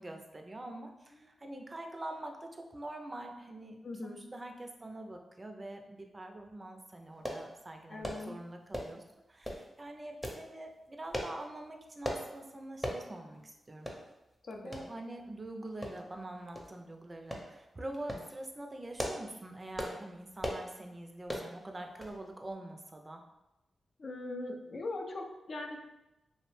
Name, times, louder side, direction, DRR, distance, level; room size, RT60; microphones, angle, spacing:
voice 1, 0.0-9.0 9.3-13.9 14.6-23.2, right 1 dB, 35° right, 3 dB, 0.4 m, -45 dB
voice 2, 3.8-4.2 7.9-8.4 14.4-14.8 24.0-25.8, left 2 dB, 60° left, 2 dB, 0.4 m, -41 dB
sound 1, 7.2-7.4 8.0-8.2 8.7-9.0 9.4-9.6 10.2-10.4 11.1-11.4 12.0-12.2 12.8-13.0 13.4-13.5 13.9-14.0 14.7-14.9 15.8-16.2 16.5-16.7 17.3-17.5 17.9-18.3 18.8-19.3 19.7-20.0 20.4-20.7 21.3-21.5 22.0-22.2 22.5-22.6, equal, 5° left, 0.6 m, -37 dB
2.6 x 2.0 x 3.1 m, 0.94 s
supercardioid pair, 45°, 0 cm